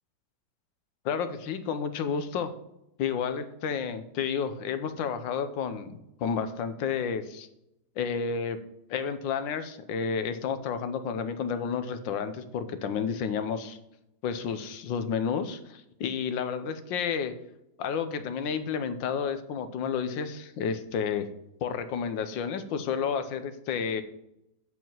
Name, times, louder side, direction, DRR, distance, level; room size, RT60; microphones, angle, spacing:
voice 1, 1.0-2.5 3.0-7.5 8.0-8.6 8.9-13.8 14.2-17.3 17.8-21.3 21.6-24.0, left 6 dB, 85° left, 10 dB, 1.5 m, -31 dB
8.1 x 4.7 x 7.3 m, 0.84 s
omnidirectional pair, 2.0 m